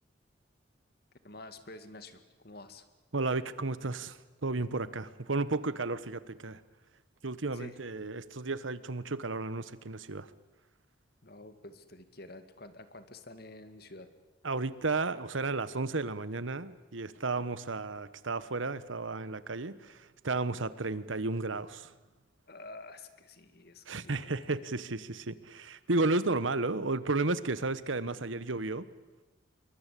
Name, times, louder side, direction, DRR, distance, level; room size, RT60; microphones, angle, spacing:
voice 1, 1.2-2.9 7.5-7.8 11.2-14.1 22.5-24.6, left 2 dB, 55° left, 10 dB, 2.1 m, -49 dB
voice 2, 3.1-6.6 7.2-10.3 14.4-21.9 23.9-28.8, right 3 dB, 90° right, 15 dB, 1.3 m, -33 dB
27.5 x 23.0 x 8.5 m, 1.1 s
head